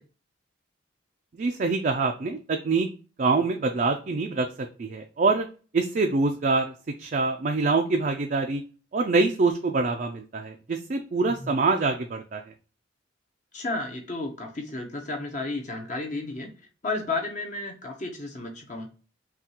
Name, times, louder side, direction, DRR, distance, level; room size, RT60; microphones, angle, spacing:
voice 1, 1.4-2.9 3.2-4.5 4.8-5.5 5.7-6.7 7.0-8.6 8.9-12.4, right 3 dB, 45° right, 3 dB, 0.4 m, -25 dB
voice 2, 13.5-16.5 16.8-19.0, left 2 dB, 40° left, 1 dB, 0.8 m, -32 dB
5.7 x 2.4 x 2.9 m, 0.37 s
head